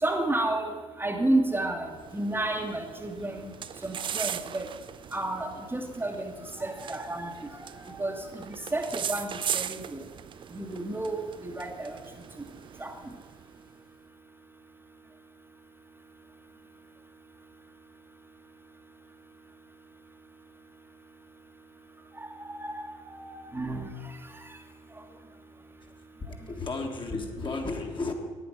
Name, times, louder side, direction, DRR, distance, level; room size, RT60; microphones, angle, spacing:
voice 1, 0.0-1.9 2.1-3.5 3.8-4.7 5.1-6.3 6.6-7.3 7.9-10.0 10.5-11.9 12.8-12.9 22.4-23.9, right 2 dB, 15° right, 3 dB, 1.3 m, -31 dB
sound 1, 1.9-13.6, right 8 dB, 30° right, 0.4 m, -39 dB
voice 2, 26.5-28.1, left 3 dB, 30° left, 2 dB, 1.8 m, -33 dB
9.9 x 8.9 x 6.3 m, 1.4 s
figure-of-eight pair, 50°, 16 cm